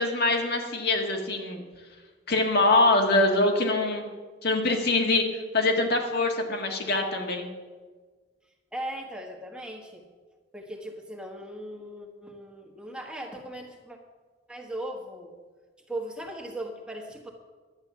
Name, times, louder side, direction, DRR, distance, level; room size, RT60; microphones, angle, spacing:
voice 1, 0.0-1.6 2.3-4.1 4.4-5.2 5.5-7.5, left 2 dB, 60° left, 2 dB, 1.7 m, -24 dB
voice 2, 8.7-10.0 10.5-14.0 14.5-15.3 15.9-17.3, right 1 dB, 5° right, 1 dB, 1.3 m, -38 dB
11.5 x 8.9 x 6.9 m, 1.4 s
head